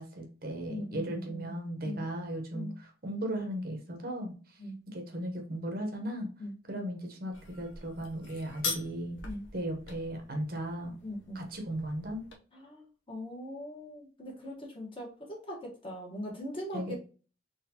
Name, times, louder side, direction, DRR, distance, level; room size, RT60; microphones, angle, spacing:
voice 1, 0.0-4.6 4.9-6.3 6.7-9.2 9.5-11.0 11.3-12.2 16.7-16.9, right 1 dB, 50° right, 3 dB, 0.9 m, -36 dB
voice 2, 0.7-1.5 1.8-2.1 2.5-2.8 4.6-4.8 6.4-6.5 9.2-9.5 11.0-11.4 12.5-16.9, equal, 30° left, -1 dB, 1.2 m, -41 dB
sound 1, 7.3-12.4, left 4 dB, 80° left, 0.8 m, -42 dB
3.9 x 3.2 x 2.8 m, 0.37 s
head